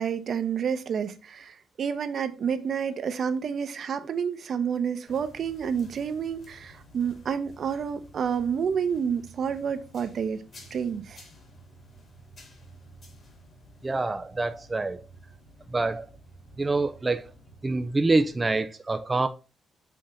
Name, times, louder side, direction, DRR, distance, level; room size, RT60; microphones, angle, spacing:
voice 1, 0.0-10.4 10.7-11.2, right 7 dB, 55° right, 0.9 m, -29 dB
sound 1, 5.1-18.6, right 1 dB, 45° left, 2.5 m, -52 dB
voice 2, 13.8-15.1 15.7-16.1 16.6-17.3 17.6-19.3, right 3 dB, 20° right, 0.4 m, -26 dB
7.7 x 2.8 x 4.9 m
cardioid pair, 90°, 0 cm